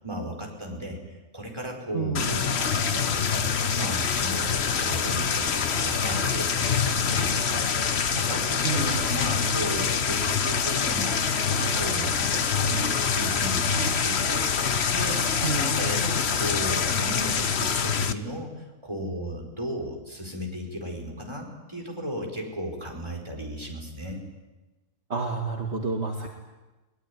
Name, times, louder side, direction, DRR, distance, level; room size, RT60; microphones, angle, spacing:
voice 1, 0.0-1.0 1.3-3.5 3.7-7.7 8.1-11.2 11.5-24.2, equal, 20° right, 0 dB, 5.0 m, -35 dB
voice 2, 1.9-2.3 8.6-9.2 15.4-15.8 25.1-26.3, right 4 dB, 55° right, 1 dB, 2.3 m, -29 dB
sound 1, 2.2-18.1, left 6 dB, 55° left, 1.3 m, -25 dB
23.0 x 20.5 x 9.9 m, 1.1 s
omnidirectional pair, 1.4 m